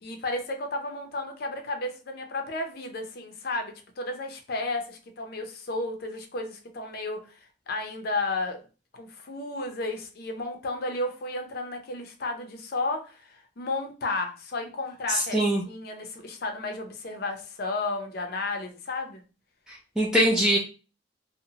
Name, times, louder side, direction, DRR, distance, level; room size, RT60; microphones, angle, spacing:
voice 1, 0.0-7.2 7.7-8.6 8.9-15.4 15.7-19.2, left 2 dB, 55° left, 5 dB, 0.5 m, -33 dB
voice 2, 15.1-15.6 19.7-20.6, right 1 dB, 5° right, -4 dB, 0.3 m, -23 dB
2.8 x 2.1 x 2.7 m, 0.34 s
head